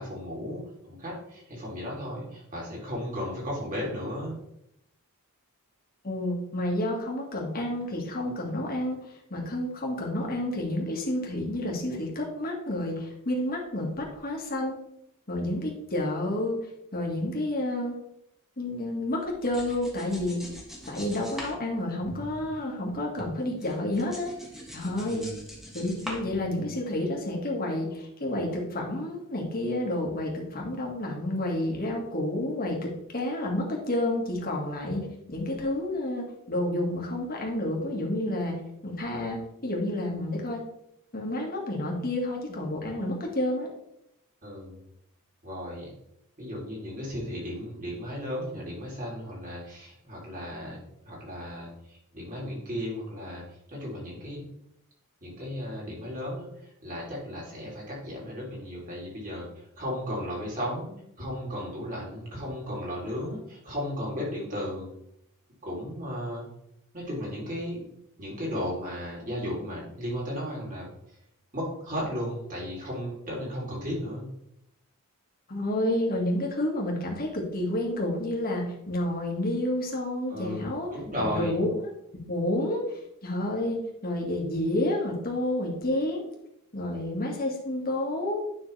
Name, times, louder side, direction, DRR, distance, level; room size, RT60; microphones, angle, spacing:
voice 1, 0.0-4.4 25.1-25.4 44.4-44.8 45.4-45.9 46.4-53.4 53.7-54.5 55.2-60.9 61.2-64.9 65.6-66.5 66.9-67.8 68.2-70.9 71.5-74.3 80.3-81.6, equal, 40° right, -4 dB, 3.4 m, -35 dB
voice 2, 6.0-9.0 9.3-14.7 15.3-16.6 16.9-18.0 18.6-20.4 20.9-24.3 24.7-25.3 25.7-38.6 38.8-40.6 41.1-43.7 75.5-80.9 81.2-81.7 82.1-86.2 86.7-88.4, left 1 dB, 40° left, 0 dB, 1.9 m, -30 dB
sound 1, 19.2-22.9 23.2-26.9, equal, ahead, 1.5 m, -42 dB
9.9 x 5.8 x 3.4 m, 0.80 s
head